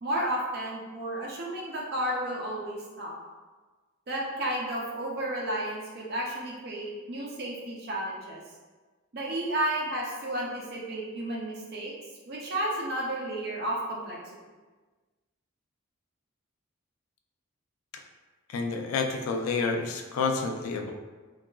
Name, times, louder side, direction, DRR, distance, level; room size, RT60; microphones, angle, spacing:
voice 1, 0.0-3.1 4.1-8.4 9.1-11.9 12.3-14.2, right 1 dB, 45° right, -3 dB, 0.5 m, -32 dB
voice 2, 18.5-20.9, left 4 dB, 80° left, 4 dB, 0.3 m, -29 dB
2.8 x 2.3 x 2.3 m, 1.3 s
head